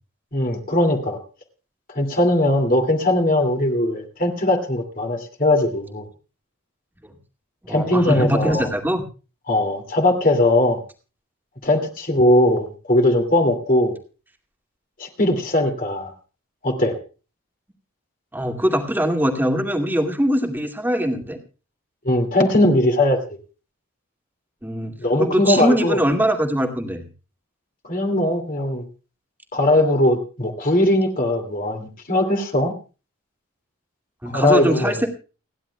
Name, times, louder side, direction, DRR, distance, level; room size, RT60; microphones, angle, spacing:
voice 1, 0.3-1.2 1.9-6.0 7.7-8.7 9.5-10.8 11.6-13.9 15.0-16.1 16.6-17.0 22.0-23.2 25.0-26.0 27.8-28.9 29.5-32.7 34.3-35.0, left 1 dB, 40° left, 3 dB, 2.5 m, -19 dB
voice 2, 7.6-9.0 18.3-21.4 24.6-24.9 25.2-27.0 34.2-35.1, equal, 10° right, 3 dB, 2.2 m, -22 dB
30.0 x 10.5 x 2.3 m, 0.34 s
head